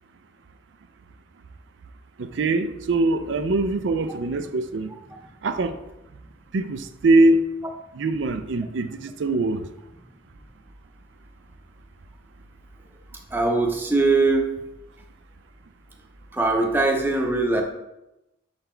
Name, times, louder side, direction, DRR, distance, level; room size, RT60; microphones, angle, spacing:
voice 1, 2.2-4.9 5.4-5.8 6.5-7.4 7.9-9.7, right 2 dB, 80° right, 9 dB, 0.4 m, -22 dB
voice 2, 13.3-14.5 16.3-17.6, right 3 dB, 10° right, 2 dB, 0.6 m, -21 dB
6.7 x 4.1 x 4.4 m, 0.93 s
head